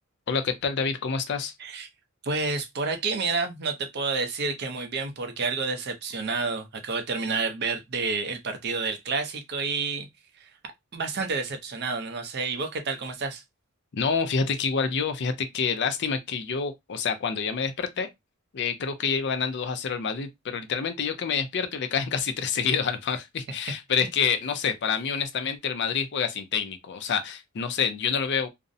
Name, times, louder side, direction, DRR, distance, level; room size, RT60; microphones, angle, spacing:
voice 1, 0.3-1.5 13.9-18.1 18.5-28.5, left 6 dB, 55° left, 0.4 m, -27 dB
voice 2, 2.2-10.1 10.4-10.5 10.9-13.4 23.9-24.1, right 4 dB, 55° right, 0.5 m, -29 dB
2.5 x 2.0 x 2.5 m
head